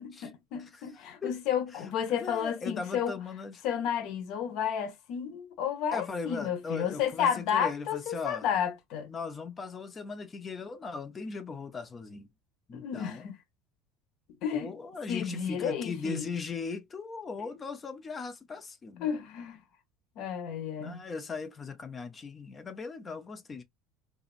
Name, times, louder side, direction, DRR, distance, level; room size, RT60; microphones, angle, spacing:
voice 1, 0.0-3.1 3.6-9.1 12.7-13.3 14.4-14.7 15.1-16.3 19.0-19.6 20.2-21.0, left 8 dB, 50° left, 1.0 m, -32 dB
voice 2, 0.6-1.3 1.7-3.6 5.9-8.5 9.1-12.3 12.7-13.3 14.5-19.1 20.8-23.6, left 4 dB, 20° left, 0.5 m, -39 dB
3.9 x 2.8 x 2.4 m
cardioid pair, 150°, 0 cm